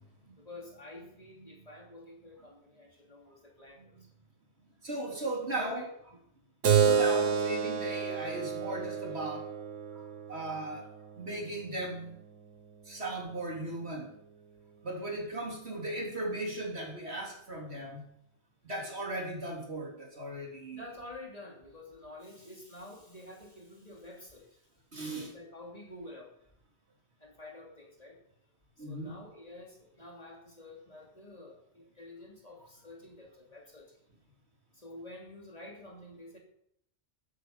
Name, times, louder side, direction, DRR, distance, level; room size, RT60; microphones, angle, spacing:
voice 1, 0.4-4.1 5.1-5.9 20.7-24.6 25.2-26.3 27.2-28.2 28.8-33.9 34.7-36.4, left 2 dB, 30° left, 0 dB, 3.1 m, -49 dB
voice 2, 4.8-5.8 6.8-9.5 9.9-10.0 10.3-10.9 11.2-12.1 12.9-14.2 14.8-18.1 18.6-20.8 24.9-25.3 28.8-29.2, right 2 dB, 55° right, 0 dB, 3.6 m, -37 dB
Keyboard (musical), 6.6-11.8, right 7 dB, 75° right, 1.7 m, -30 dB
14.0 x 10.0 x 6.8 m, 0.71 s
omnidirectional pair, 1.3 m